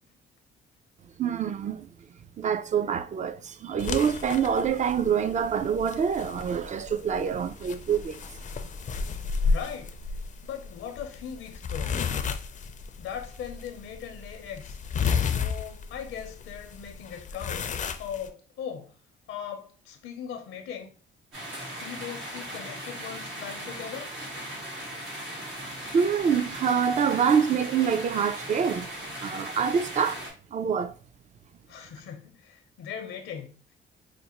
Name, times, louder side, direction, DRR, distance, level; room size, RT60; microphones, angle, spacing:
voice 1, 1.2-1.9 2.4-8.2 25.9-28.9 29.2-30.2 30.5-30.9, right 7 dB, 40° right, 0.4 m, -26 dB
sound 1, 3.8-18.3, left 5 dB, 40° left, 0.4 m, -33 dB
voice 2, 9.4-10.0 10.4-12.0 13.0-14.8 15.2-17.6 18.0-19.0 19.3-20.9 21.5-24.1 31.7-33.7, left 8 dB, 85° left, 0.6 m, -39 dB
sound 2, 21.3-30.3, equal, 85° right, 1.6 m, -38 dB
5.0 x 2.1 x 2.9 m
cardioid pair, 90°, 20 cm